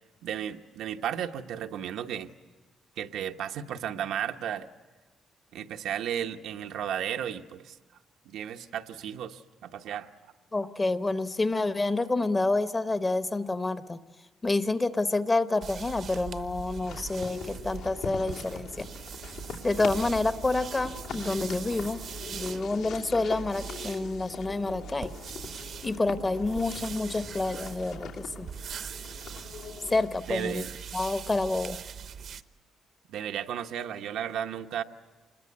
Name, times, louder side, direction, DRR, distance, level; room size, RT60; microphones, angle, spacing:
voice 1, 0.2-2.3 3.0-4.7 5.5-7.8 8.2-10.1 30.3-30.7 33.1-34.8, right 9 dB, 85° right, 5 dB, 1.0 m, -34 dB
voice 2, 10.5-14.0 14.4-18.9 19.6-22.0 22.3-25.1 25.8-28.5 29.9-30.6 30.9-31.8, left 2 dB, 20° left, 12 dB, 0.8 m, -28 dB
sound 1, 15.6-32.4, right 7 dB, 50° right, 0.8 m, -41 dB
sound 2, 16.9-30.2, left 6 dB, 85° left, 2.8 m, -42 dB
26.0 x 21.5 x 9.6 m, 1.3 s
cardioid pair, 160°, 0 cm